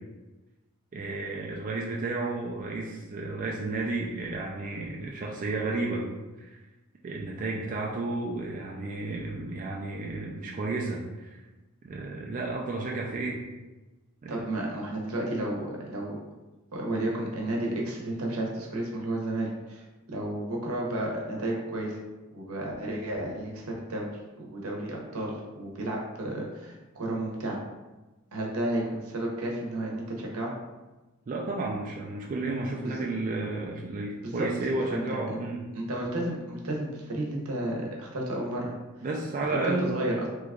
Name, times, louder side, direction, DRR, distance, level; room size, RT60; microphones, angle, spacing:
voice 1, 0.9-6.1 6.4-6.6 7.0-11.4 11.8-13.4 14.2-14.4 31.3-35.7 39.0-39.9, right 2 dB, 35° right, -2 dB, 0.3 m, -32 dB
voice 2, 14.3-16.2 16.7-22.0 22.3-24.1 24.3-27.6 28.3-30.5 32.8-33.0 34.2-34.5 34.9-35.4 35.7-38.8 39.5-40.3, right 1 dB, 85° right, -2 dB, 0.8 m, -32 dB
2.9 x 2.3 x 3.5 m, 1.1 s
head